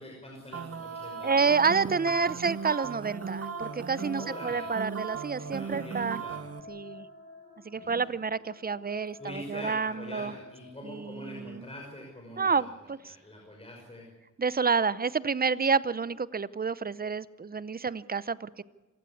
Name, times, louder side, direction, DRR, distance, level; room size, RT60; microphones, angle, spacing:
voice 1, 0.0-1.7 2.2-2.4 4.1-4.6 5.5-6.4 7.7-8.0 9.2-12.7 13.1-14.0, left 1 dB, 20° left, -1 dB, 5.6 m, -44 dB
sound 1, 0.5-6.6, right 6 dB, 50° right, 1.5 m, -37 dB
voice 2, 1.2-6.2 6.7-7.1 7.6-10.3 10.8-11.6 12.4-13.2 14.4-18.6, right 5 dB, 30° right, 18 dB, 0.7 m, -29 dB
sound 2, 2.3-11.4, left 3 dB, 50° left, 6.8 m, -49 dB
26.0 x 15.5 x 8.5 m, 1.2 s
wide cardioid pair, 100°, 30 cm